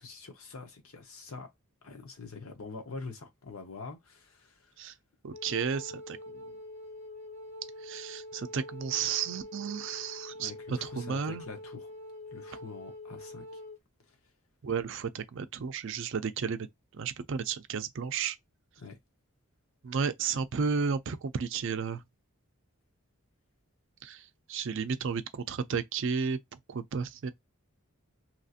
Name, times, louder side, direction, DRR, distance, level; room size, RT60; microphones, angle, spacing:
voice 1, 0.0-1.5 1.8-4.7 10.4-11.9 12.3-13.6 18.8-19.0, left 4 dB, 75° left, 0.9 m, -45 dB
voice 2, 5.2-6.4 7.8-11.5 14.6-16.7 16.9-18.4 19.8-22.0 24.0-27.3, right 6 dB, 60° right, 0.4 m, -33 dB
Wind instrument woodwind instrument, 5.3-13.8, left 1 dB, 50° left, 1.4 m, -45 dB
2.9 x 2.7 x 2.4 m
head